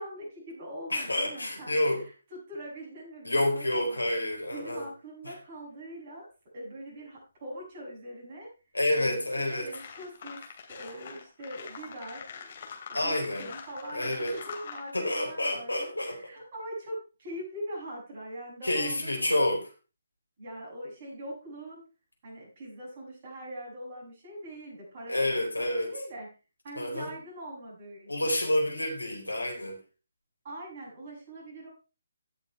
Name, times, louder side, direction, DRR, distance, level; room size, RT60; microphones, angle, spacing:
voice 1, 0.0-4.0 4.5-6.3 6.5-8.5 8.9-10.4 10.7-12.3 12.9-19.5 20.4-21.8 22.2-26.3 26.6-28.3 30.4-31.7, right 1 dB, 35° right, -3 dB, 7.1 m, -42 dB
voice 2, 0.9-2.0 3.2-4.9 5.2-5.3 8.7-9.7 12.9-13.4 13.9-14.4 14.9-16.3 18.6-19.7 25.1-25.9 26.8-27.1 28.1-29.8, left 1 dB, 80° left, 1 dB, 4.3 m, -28 dB
sound 1, 9.1-9.2 9.6-14.9, left 6 dB, 40° left, 2.8 m, -44 dB
16.5 x 7.0 x 3.3 m, 0.32 s
figure-of-eight pair, 140°, 0 cm